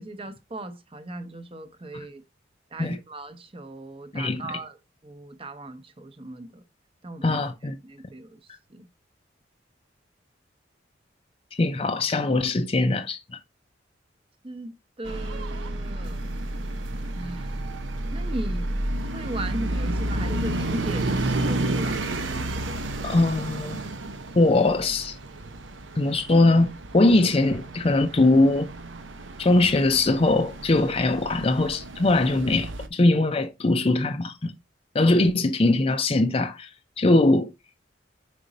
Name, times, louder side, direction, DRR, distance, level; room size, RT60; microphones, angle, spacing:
voice 1, 0.0-2.2 2.7-6.6 7.0-7.4 7.8-8.4 8.7-8.9 14.4-16.3 17.1-17.8 18.1-18.7 19.1-22.7, right 1 dB, 30° right, 0.8 m, -37 dB
voice 2, 4.1-4.5 7.2-7.8 11.6-13.2 23.0-23.8 24.4-25.2 26.0-28.7 29.4-34.5 34.9-36.7 37.0-37.5, left 2 dB, 30° left, 0.5 m, -21 dB
sound 1, 15.0-32.9, right 1 dB, 90° right, 0.8 m, -31 dB
5.1 x 5.0 x 4.0 m
head